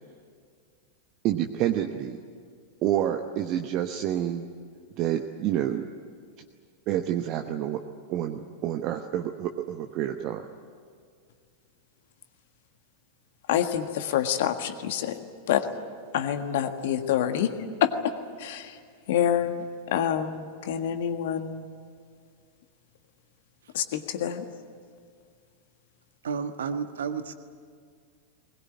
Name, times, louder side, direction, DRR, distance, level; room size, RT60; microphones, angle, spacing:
voice 1, 1.2-2.2 2.8-4.4 5.0-5.8 6.9-7.8 8.1-10.5, right 11 dB, 40° right, 5 dB, 1.0 m, -28 dB
voice 2, 13.5-15.2 15.5-15.7 16.1-17.5 17.8-18.8 19.1-21.6 23.7-24.5, left 9 dB, 55° left, 8 dB, 1.6 m, -27 dB
voice 3, 26.2-27.3, right 6 dB, 65° right, 9 dB, 1.4 m, -31 dB
21.0 x 20.5 x 9.8 m, 2.1 s
figure-of-eight pair, 90°, 0 cm